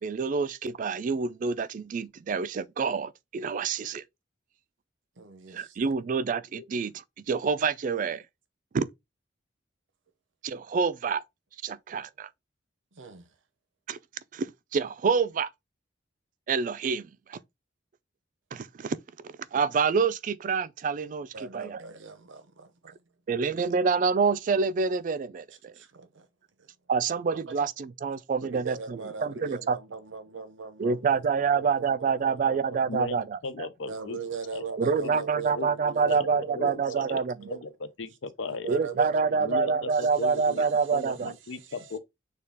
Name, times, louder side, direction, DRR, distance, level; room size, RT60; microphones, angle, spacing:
voice 1, 0.0-4.0 5.5-8.2 8.7-8.9 10.4-11.2 11.6-12.3 13.9-14.0 14.3-15.5 16.5-17.4 18.5-19.0 19.5-21.8 23.3-25.7 26.9-28.8 29.2-29.8 30.8-33.7 34.8-37.5 38.7-41.3, right 5 dB, 45° right, 0.3 m, -27 dB
voice 2, 5.2-5.8 12.9-13.3 21.3-23.0 25.7-26.3 26.6-26.7 27.3-27.6 28.4-33.1 33.9-37.6 38.5-41.9, right 6 dB, 90° right, 0.8 m, -40 dB
voice 3, 32.9-34.2 34.5-34.7 35.0-35.2 35.5-35.7 36.0-38.7 39.4-42.0, left 3 dB, 90° left, 0.6 m, -37 dB
6.5 x 2.3 x 3.4 m
head